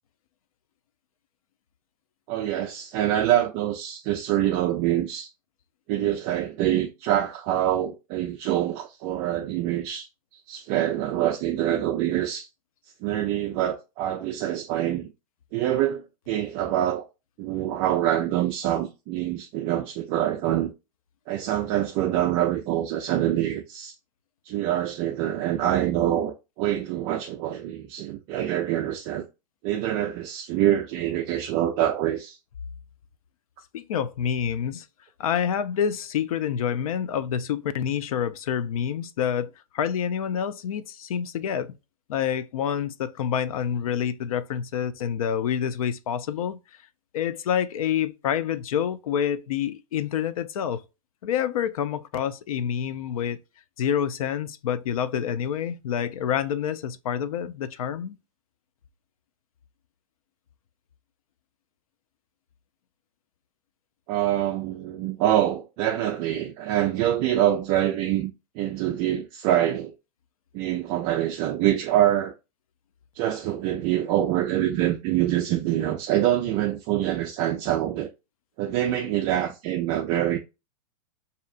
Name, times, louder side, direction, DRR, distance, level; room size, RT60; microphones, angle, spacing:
voice 1, 2.3-5.3 5.9-10.1 10.5-12.5 13.0-15.1 15.5-17.0 17.4-20.7 21.3-23.9 24.5-29.2 29.6-32.4 64.1-69.9 70.5-72.3 73.2-78.1 78.6-80.4, right 12 dB, 30° right, 0.4 m, -25 dB
voice 2, 33.7-34.9 35.2-41.7 42.1-46.6 47.1-50.8 51.2-53.4 53.8-58.2, left 8 dB, 85° left, 0.5 m, -27 dB
5.3 x 2.7 x 2.4 m
supercardioid pair, 150°, 18 cm